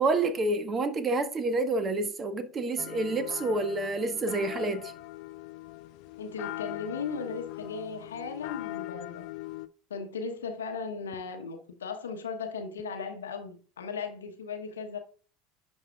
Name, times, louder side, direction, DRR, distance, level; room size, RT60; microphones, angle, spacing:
voice 1, 0.0-4.9, right 2 dB, 30° right, 1.2 m, -28 dB
sound 1, 2.8-9.7, left 18 dB, 60° left, 0.4 m, -41 dB
voice 2, 6.2-9.3 9.9-15.0, left 5 dB, 80° left, 1.0 m, -37 dB
10.5 x 5.4 x 2.3 m
figure-of-eight pair, 70°, 0 cm